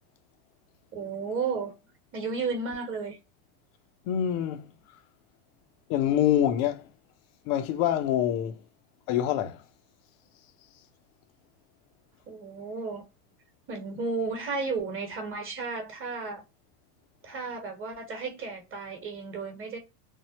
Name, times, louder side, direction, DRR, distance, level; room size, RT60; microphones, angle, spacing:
voice 1, 0.9-1.7 2.1-3.2 12.3-13.0 13.7-16.4 17.2-19.8, right 4 dB, 25° right, 1.2 m, -33 dB
voice 2, 4.1-4.7 5.9-6.9 7.5-8.6 9.1-9.6, left 10 dB, 45° left, 0.6 m, -25 dB
3.5 x 2.0 x 2.8 m
hypercardioid pair, 105°, 47 cm